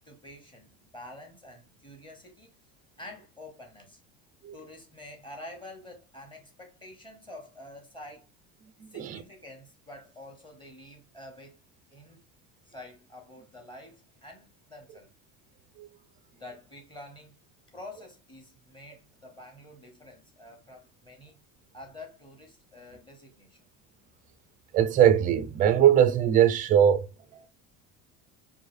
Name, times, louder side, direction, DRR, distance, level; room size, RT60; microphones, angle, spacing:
voice 1, 0.0-2.6 3.0-4.0 4.5-8.3 8.9-11.6 11.9-12.2 12.7-15.1 16.3-17.4 17.7-21.4 21.7-23.7, left 1 dB, 15° left, 1.2 m, -48 dB
voice 2, 8.8-9.2 15.8-15.9 24.7-27.5, right 9 dB, 25° right, 0.3 m, -21 dB
4.6 x 2.6 x 3.1 m
cardioid pair, 150°, 34 cm